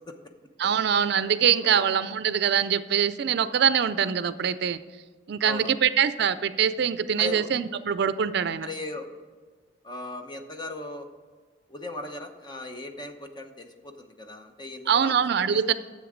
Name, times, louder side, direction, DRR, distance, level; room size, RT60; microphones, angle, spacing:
voice 1, 0.6-4.8 5.3-8.7 14.9-15.7, right 8 dB, 60° right, 14 dB, 0.4 m, -24 dB
voice 2, 5.4-5.7 7.2-7.5 8.6-9.1 9.8-11.1 11.7-15.7, left 2 dB, 25° left, 5 dB, 0.9 m, -38 dB
10.0 x 7.6 x 5.0 m, 1.5 s
head